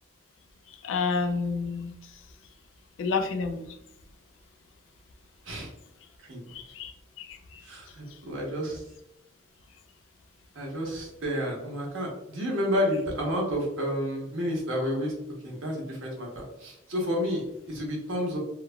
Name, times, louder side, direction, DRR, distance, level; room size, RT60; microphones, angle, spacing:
voice 1, 0.8-1.9 3.0-3.6 6.5-6.9 7.2-7.4, left 4 dB, 75° left, 6 dB, 0.4 m, -29 dB
voice 2, 7.6-8.8 10.5-15.1 15.4-18.4, equal, 85° right, -1 dB, 1.0 m, -30 dB
3.2 x 2.3 x 2.2 m, 0.83 s
head